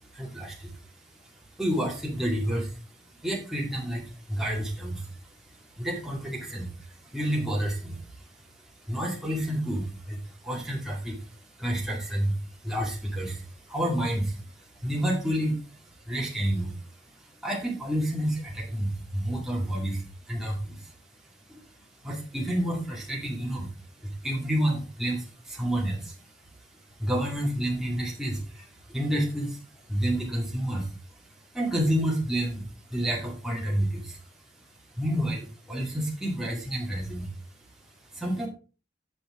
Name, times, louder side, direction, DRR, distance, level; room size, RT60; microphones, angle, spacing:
voice 1, 0.1-0.7 1.6-2.7 3.2-5.1 5.8-6.7 7.1-8.0 8.9-10.2 10.4-11.2 11.6-12.3 12.6-14.4 14.8-15.6 16.1-16.7 17.4-20.8 21.5-21.6 22.0-23.7 24.0-26.2 27.0-29.6 29.9-30.9 31.5-34.2 35.0-37.3 38.1-38.5, equal, ahead, -3 dB, 2.1 m, -29 dB
8.2 x 5.8 x 3.7 m, 0.35 s
head